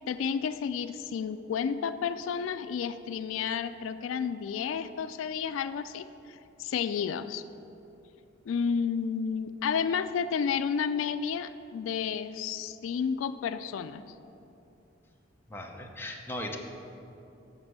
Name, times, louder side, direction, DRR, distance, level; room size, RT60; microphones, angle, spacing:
voice 1, 0.1-7.4 8.5-14.0, left 6 dB, 90° left, 12 dB, 0.3 m, -31 dB
voice 2, 15.5-16.6, left 1 dB, 10° left, 1 dB, 0.8 m, -38 dB
7.5 x 6.9 x 6.2 m, 2.8 s
head